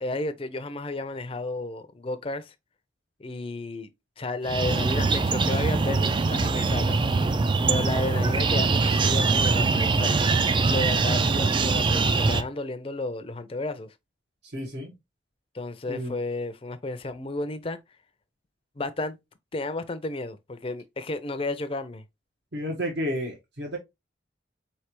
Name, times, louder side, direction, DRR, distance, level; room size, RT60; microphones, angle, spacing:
voice 1, 0.0-2.5 3.2-3.9 4.2-7.1 7.7-10.2 10.6-13.9 15.5-17.8 18.8-19.2 19.5-22.0, left 2 dB, 30° left, 0.5 m, -32 dB
sound 1, 4.5-12.4, right 4 dB, 25° right, 0.3 m, -23 dB
voice 2, 14.5-14.9 15.9-16.1 22.5-23.8, equal, 65° right, 1.2 m, -31 dB
4.4 x 3.3 x 2.9 m
head